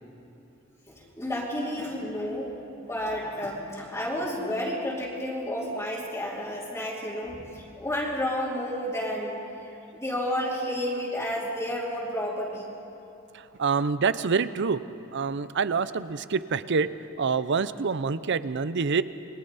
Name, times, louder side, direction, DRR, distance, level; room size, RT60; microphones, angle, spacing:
voice 1, 0.9-2.5 2.8-9.4 9.9-12.7, equal, 15° left, -8 dB, 2.9 m, -31 dB
voice 2, 13.3-14.8 15.1-16.9 17.2-19.0, right 5 dB, 60° right, 15 dB, 0.6 m, -26 dB
28.5 x 22.0 x 4.2 m, 2.9 s
head